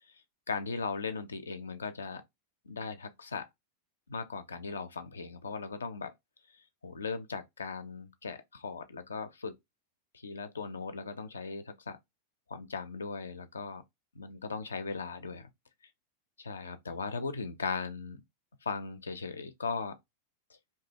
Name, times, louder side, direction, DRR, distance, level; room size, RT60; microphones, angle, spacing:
voice 1, 0.5-2.2 2.6-3.5 4.1-6.1 6.5-9.5 10.1-12.0 12.5-13.8 14.1-15.5 16.4-18.2 18.6-20.0, left 4 dB, 70° left, 0.4 m, -38 dB
2.7 x 2.2 x 2.8 m
figure-of-eight pair, 90°, 0 cm